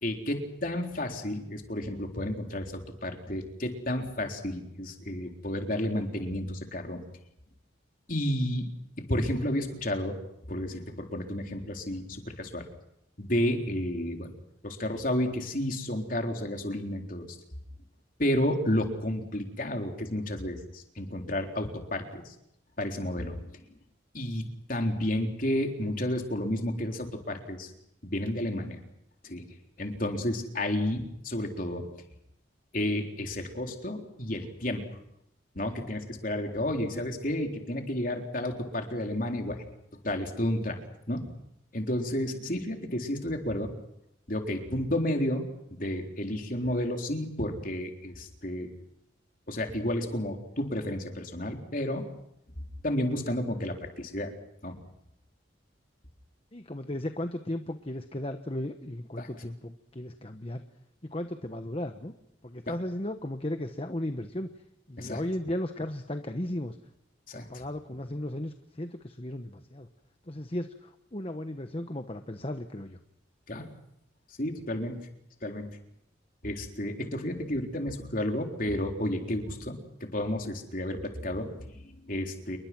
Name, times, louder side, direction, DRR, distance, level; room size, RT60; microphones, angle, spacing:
voice 1, 0.0-7.0 8.1-8.7 9.0-10.1 10.5-12.6 13.2-14.3 14.6-17.3 18.2-22.2 22.8-23.4 24.1-24.4 24.7-27.7 28.0-28.8 29.2-29.4 29.8-31.8 32.7-34.8 35.6-39.6 40.0-40.8 41.1-41.3 41.7-43.7 44.3-45.5 45.8-48.7 49.5-52.0 52.8-54.3 54.6-54.7 59.2-59.3 65.0-65.2 67.3-67.5 73.5-73.7 74.4-75.0 75.4-75.7 76.4-79.8 80.1-82.6, left 1 dB, 45° left, 3 dB, 3.9 m, -31 dB
voice 2, 56.5-60.6 61.1-62.1 62.4-64.5 64.9-66.8 67.3-69.9 70.3-73.0, left 1 dB, 30° left, 7 dB, 1.2 m, -35 dB
29.0 x 22.5 x 6.1 m, 0.82 s
head